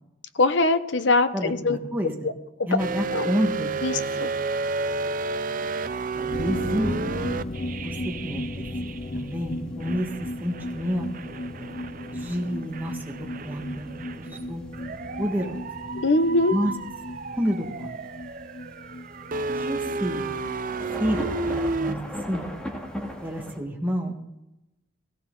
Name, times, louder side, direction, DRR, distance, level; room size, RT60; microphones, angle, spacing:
voice 1, 0.4-1.8 2.2-2.3 3.1-3.3 3.8-4.3 16.0-16.5, left 2 dB, 70° left, 12 dB, 0.9 m, -22 dB
voice 2, 1.3-2.3 2.7-4.3 6.2-6.9 7.8-11.4 12.1-13.9 14.2-14.6 15.2-15.6 16.5-16.7 17.4-17.9 19.5-20.3 21.0-22.0 22.3-22.5 23.2-24.3, equal, 10° right, 0 dB, 1.7 m, -29 dB
sound 1, 2.8-9.3 9.8-21.9, right 3 dB, 45° right, 0.5 m, -32 dB
sound 2, 5.6-23.6, equal, 5° left, 2.2 m, -41 dB
sound 3, 6.3-21.7 21.9-22.1 22.4-22.5, left 1 dB, 40° left, 0.5 m, -36 dB
17.0 x 17.0 x 3.9 m, 0.96 s
head